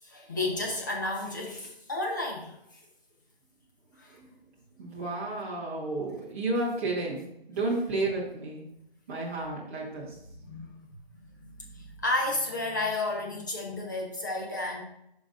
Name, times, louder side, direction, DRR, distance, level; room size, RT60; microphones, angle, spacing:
voice 1, 0.0-2.8 4.0-4.2 10.4-10.9 11.4-14.8, left 2 dB, 20° left, -1 dB, 0.9 m, -32 dB
voice 2, 4.8-8.7 9.1-10.2, right 2 dB, 15° right, -6 dB, 1.1 m, -32 dB
10.5 x 5.3 x 2.5 m, 0.80 s
hypercardioid pair, 175°, 31 cm